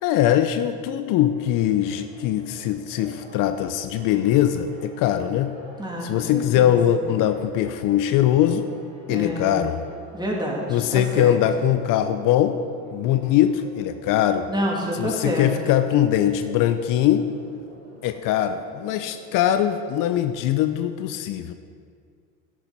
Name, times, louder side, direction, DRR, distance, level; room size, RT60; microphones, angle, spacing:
voice 1, 0.0-5.5 6.0-8.7 9.1-9.8 10.7-12.6 12.9-14.5 15.0-17.3 18.0-21.5, left 11 dB, 65° left, 9 dB, 0.6 m, -21 dB
Church bell, 1.3-19.6, right 2 dB, 90° right, 3.2 m, -46 dB
voice 2, 5.8-6.8 9.1-9.6 10.1-11.3 14.5-15.5, equal, 10° right, -3 dB, 2.9 m, -28 dB
11.0 x 9.8 x 4.2 m, 2.2 s
supercardioid pair, 75°, 35 cm